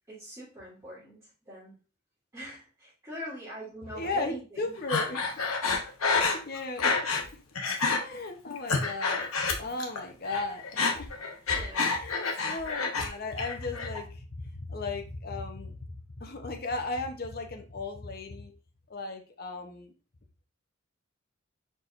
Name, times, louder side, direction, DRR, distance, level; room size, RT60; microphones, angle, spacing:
voice 1, 0.1-1.7 2.3-4.8 11.5-12.0, equal, 15° right, -14 dB, 2.2 m, -43 dB
voice 2, 3.9-5.3 6.1-7.4 8.0-9.3 9.6-11.1 11.9-18.5 18.9-19.9, left 3 dB, 45° left, 4 dB, 0.7 m, -36 dB
Breathing, 4.9-7.3 7.6-8.0 8.5-10.0 10.3-13.1 13.4-14.0, left 4 dB, 85° left, 0.9 m, -28 dB
4.6 x 4.4 x 2.4 m, 0.34 s
head